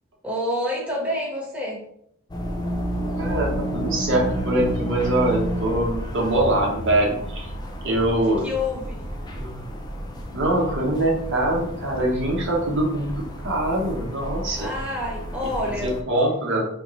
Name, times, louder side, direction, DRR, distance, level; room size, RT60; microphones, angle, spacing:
voice 1, 0.2-1.8 8.2-9.0 14.6-15.9, left 1 dB, 5° right, -5 dB, 1.1 m, -28 dB
sound 1, 2.3-16.0, equal, 20° left, 0.5 m, -31 dB
voice 2, 3.2-7.5 7.8-8.5 9.4-9.6 10.3-14.7 15.8-16.7, right 1 dB, 55° right, -1 dB, 0.9 m, -23 dB
3.9 x 3.5 x 3.1 m, 0.72 s
head